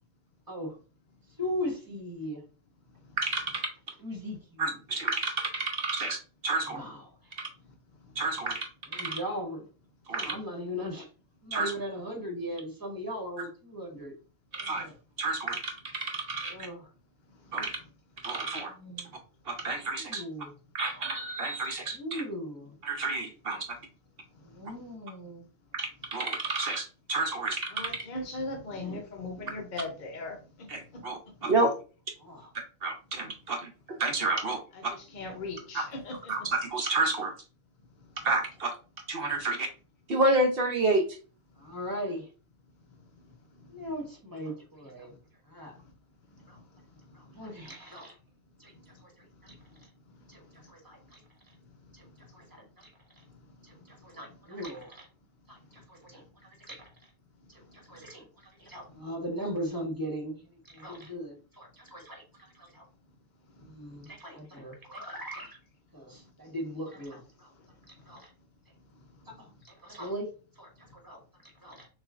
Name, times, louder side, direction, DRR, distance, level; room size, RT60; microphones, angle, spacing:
voice 1, 1.4-2.4 4.0-4.7 6.6-7.0 8.9-9.6 10.1-11.1 11.4-14.1 14.5-14.9 16.4-16.9 18.7-19.1 19.8-20.5 21.9-22.8 24.4-25.4 28.7-29.0 29.4-29.5 32.2-32.5 41.6-42.3 43.7-45.2 45.5-45.8 46.5-46.6 47.1-48.1 48.6-48.7 49.0-49.1 49.4-49.5 50.3-50.4 50.7-51.2 51.9-52.1 52.3-52.9 53.6-55.1 55.5-56.2 56.6-56.8 57.5-58.2 58.6-60.3 60.6-62.2 62.5-62.8 63.7-65.6 65.9-67.5 68.1-68.3 69.3-70.3 70.6-71.9, equal, 15° right, 0.9 m, -39 dB
voice 2, 3.2-3.7 4.6-6.2 6.4-6.8 8.2-8.7 8.9-9.2 10.1-10.3 11.5-11.7 14.5-14.9 15.2-16.5 17.5-17.8 18.2-18.7 19.5-20.2 20.7-22.2 22.8-23.6 25.7-27.9 30.7-31.7 32.8-34.6 36.3-37.3 38.2-38.7 39.1-39.7 40.1-41.1, right 2 dB, 55° right, 0.8 m, -29 dB
voice 3, 27.7-30.7 30.9-31.0 34.7-36.5, left 2 dB, 45° left, 0.7 m, -38 dB
6.5 x 2.4 x 2.4 m
omnidirectional pair, 1.5 m